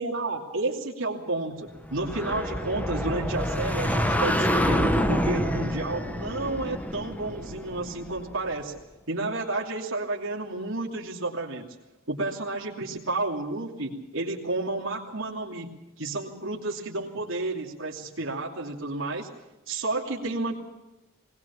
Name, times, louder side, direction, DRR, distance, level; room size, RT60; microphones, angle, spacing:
voice 1, 0.0-8.7 9.1-11.6 12.1-19.3 19.7-20.5, right 2 dB, 75° right, -2 dB, 2.8 m, -31 dB
sound 1, 1.9-8.5, equal, 10° left, 1.2 m, -27 dB
20.5 x 19.0 x 7.2 m, 1.0 s
head